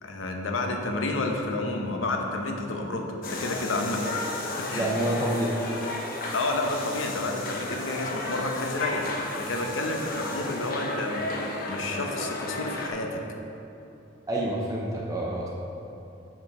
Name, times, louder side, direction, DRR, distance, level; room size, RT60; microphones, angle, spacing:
voice 1, 0.0-4.1 4.6-4.9 6.3-13.2, left 2 dB, 75° left, 3 dB, 0.8 m, -30 dB
sound 1, 3.2-12.9, left 2 dB, 45° left, 0.8 m, -33 dB
voice 2, 4.7-5.6 14.3-15.5, right 1 dB, 15° right, -4 dB, 0.7 m, -28 dB
6.4 x 6.2 x 4.8 m, 2.9 s
head